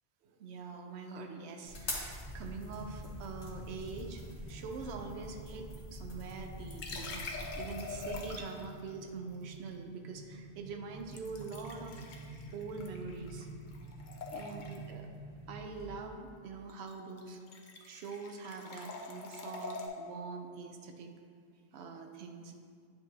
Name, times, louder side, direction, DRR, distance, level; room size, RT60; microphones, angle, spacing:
voice 1, 0.2-12.1 12.5-13.5 14.3-15.1 15.5-17.4 17.8-21.1 21.7-22.5, right 4 dB, 75° right, 4 dB, 0.9 m, -44 dB
sound 1, 1.6-8.4, left 1 dB, 90° left, 1.5 m, -45 dB
sound 2, 2.1-16.3, right 3 dB, 40° right, 0.7 m, -50 dB
sound 3, 6.7-8.7 11.1-13.5 13.7-14.9 16.7-16.9 17.2-19.9, left 3 dB, 50° left, 0.7 m, -44 dB
9.6 x 3.9 x 2.8 m, 2.1 s
omnidirectional pair, 1.1 m